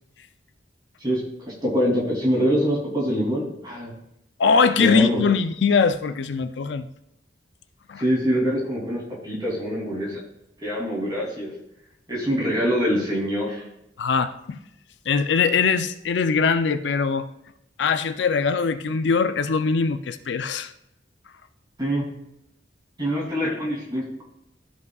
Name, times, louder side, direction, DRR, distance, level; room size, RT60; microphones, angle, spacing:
voice 1, 1.0-3.9 4.8-5.3 8.0-10.2 10.6-11.5 12.1-13.6 21.8-22.0 23.0-24.2, equal, 25° right, -4 dB, 2.8 m, -24 dB
voice 2, 4.4-6.9 7.9-8.0 14.0-14.6 15.1-17.3 17.8-20.7, left 5 dB, 75° left, 11 dB, 0.4 m, -21 dB
13.0 x 5.5 x 2.4 m, 0.81 s
head